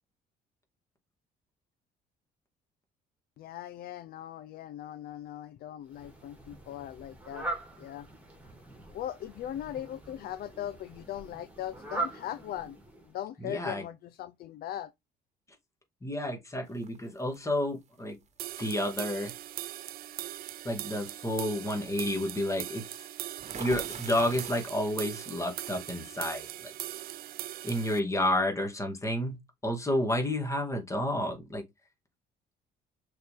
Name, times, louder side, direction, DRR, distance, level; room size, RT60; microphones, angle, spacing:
voice 1, 3.4-7.5 7.8-8.1 8.9-12.8 13.0-14.9, left 11 dB, 65° left, 0.5 m, -39 dB
Fowl, 5.9-13.2, right 2 dB, 10° right, 2.7 m, -41 dB
voice 2, 13.4-13.8 16.0-18.2 18.6-19.3 20.6-22.9 23.6-26.7 27.6-29.4 29.6-31.6, left 1 dB, 15° left, 2.1 m, -30 dB
sound 1, 16.8-17.4 18.7-18.9 19.4-19.7 23.4-25.1, right 6 dB, 40° right, 1.3 m, -43 dB
sound 2, 18.4-28.0, right 14 dB, 60° right, 0.5 m, -40 dB
6.4 x 4.3 x 3.6 m
cardioid pair, 110°, 17 cm